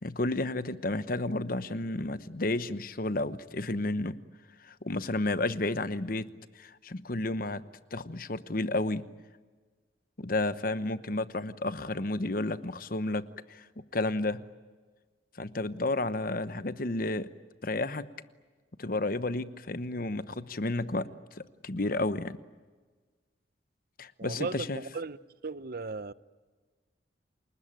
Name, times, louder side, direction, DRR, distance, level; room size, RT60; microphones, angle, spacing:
voice 1, 0.0-4.2 4.6-6.3 6.6-7.6 7.9-9.0 10.2-13.6 13.9-14.4 15.4-17.3 17.6-18.1 18.8-22.4 24.0-24.8, left 2 dB, 50° left, 1.0 m, -31 dB
voice 2, 24.2-25.2 25.4-26.1, right 4 dB, 55° right, 0.7 m, -36 dB
29.5 x 20.0 x 9.0 m
head